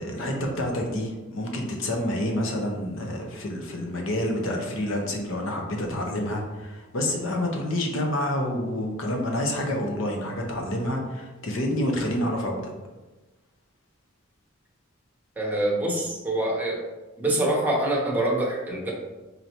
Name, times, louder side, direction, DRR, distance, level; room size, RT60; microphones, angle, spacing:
voice 1, 0.0-12.7, left 1 dB, 70° left, 1 dB, 0.7 m, -28 dB
voice 2, 15.4-16.8 17.2-18.9, right 1 dB, 10° right, -3 dB, 0.7 m, -25 dB
4.0 x 3.2 x 2.8 m, 1.1 s
head